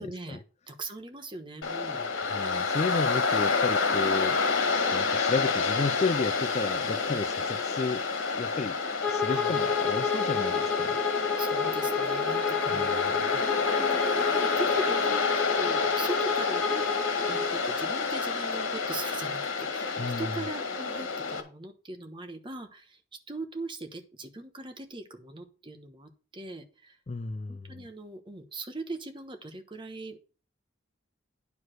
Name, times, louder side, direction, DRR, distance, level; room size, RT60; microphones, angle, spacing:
voice 1, 0.0-2.1 9.3-9.8 11.4-13.1 13.4-23.0 23.3-27.0 27.5-30.2, right 2 dB, 25° right, 1.1 m, -40 dB
Waves surf, 1.6-21.4, left 4 dB, 75° left, 1.8 m, -28 dB
voice 2, 2.2-4.4 4.9-8.1 8.3-8.8 9.1-11.0 12.7-13.3 20.0-20.3 27.1-27.9, left 4 dB, 35° left, 0.4 m, -33 dB
Bowed string instrument, 9.0-17.5, left 6 dB, ahead, 1.8 m, -30 dB
9.6 x 4.8 x 6.3 m
head